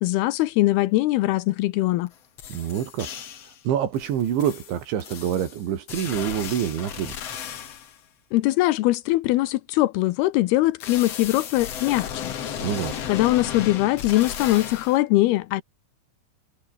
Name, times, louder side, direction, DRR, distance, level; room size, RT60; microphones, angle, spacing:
voice 1, 0.0-2.1 8.3-12.3 13.1-15.6, left 17 dB, 80° left, 2.4 m, -21 dB
sound 1, 2.1-2.2 2.4-3.6 3.9-8.0 10.8-15.0, left 9 dB, 55° left, 1.9 m, -35 dB
voice 2, 2.5-3.1 3.6-7.2 12.6-12.9, right 10 dB, 80° right, 5.1 m, -26 dB
omnidirectional pair, 5.2 m